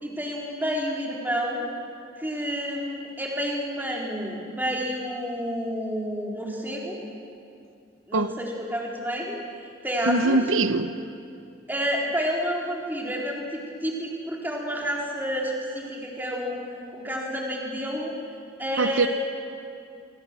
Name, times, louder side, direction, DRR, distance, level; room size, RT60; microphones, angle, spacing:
voice 1, 0.0-1.7 2.2-7.0 8.1-10.4 11.7-16.6 16.9-18.1 18.6-19.1, equal, 10° right, -2 dB, 3.9 m, -29 dB
voice 2, 10.1-10.9 18.8-19.1, right 3 dB, 90° right, 11 dB, 0.9 m, -22 dB
27.5 x 24.5 x 7.6 m, 2.4 s
head